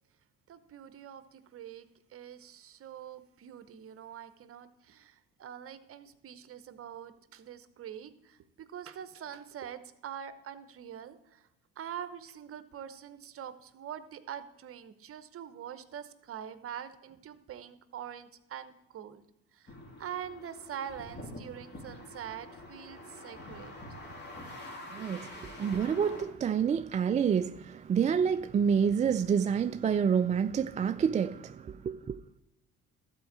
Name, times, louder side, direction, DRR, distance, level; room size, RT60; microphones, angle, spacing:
voice 1, 0.5-11.5 11.8-19.2 19.5-23.7, right 9 dB, 50° right, 0.9 m, -44 dB
Country Lane Passing Traffic with mild wind, 19.7-26.3, left 1 dB, 35° left, 2.6 m, -46 dB
voice 2, 24.9-32.2, right 7 dB, 25° right, 0.3 m, -28 dB
12.5 x 4.5 x 7.4 m
supercardioid pair, 80°, 30 cm